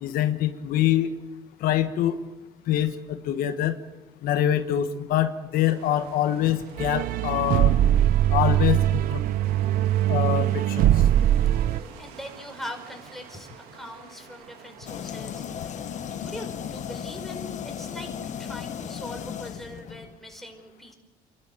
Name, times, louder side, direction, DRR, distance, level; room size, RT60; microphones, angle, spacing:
voice 1, 0.0-1.1 1.6-2.2 2.7-3.8 4.2-7.7 8.3-9.2 10.1-10.9, left 12 dB, 75° left, 9 dB, 1.3 m, -25 dB
sound 1, 5.5-19.4, right 6 dB, 85° right, 3.1 m, -49 dB
sound 2, 6.8-11.8, right 12 dB, 65° right, 0.7 m, -21 dB
voice 2, 12.0-20.9, left 1 dB, ahead, 3 dB, 5.2 m, -42 dB
sound 3, 14.9-20.1, left 8 dB, 50° left, 1.3 m, -35 dB
29.0 x 12.5 x 9.4 m, 1.1 s
cardioid pair, 100°, 15 cm